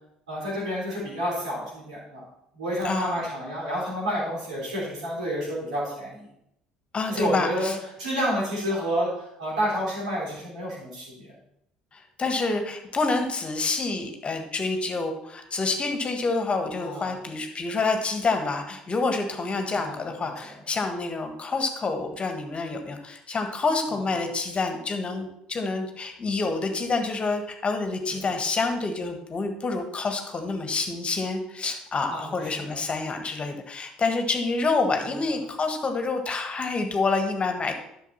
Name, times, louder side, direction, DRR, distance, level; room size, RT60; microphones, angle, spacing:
voice 1, 0.3-2.2 2.5-6.3 7.1-7.7 8.0-11.3 16.8-17.1 19.7-20.5 28.1-28.3 32.1-32.4 32.7-32.8, equal, 80° right, -6 dB, 4.2 m, -30 dB
voice 2, 2.8-3.2 6.9-7.8 11.9-37.7, left 3 dB, 30° left, 5 dB, 1.5 m, -27 dB
11.5 x 6.5 x 4.2 m, 0.77 s
figure-of-eight pair, 60°, 4 cm